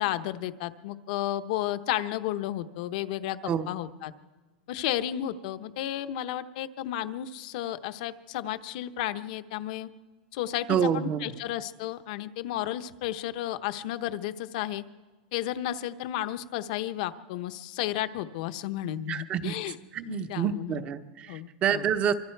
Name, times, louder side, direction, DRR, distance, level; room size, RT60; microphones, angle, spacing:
voice 1, 0.0-4.1 4.7-9.9 10.3-14.8 15.3-19.7 20.1-20.8 21.3-21.9, left 13 dB, 50° left, 11 dB, 0.9 m, -33 dB
voice 2, 10.7-11.3 19.1-22.1, right 8 dB, 25° right, 10 dB, 0.9 m, -28 dB
25.0 x 25.0 x 4.6 m, 1.3 s
supercardioid pair, 170°, 5 cm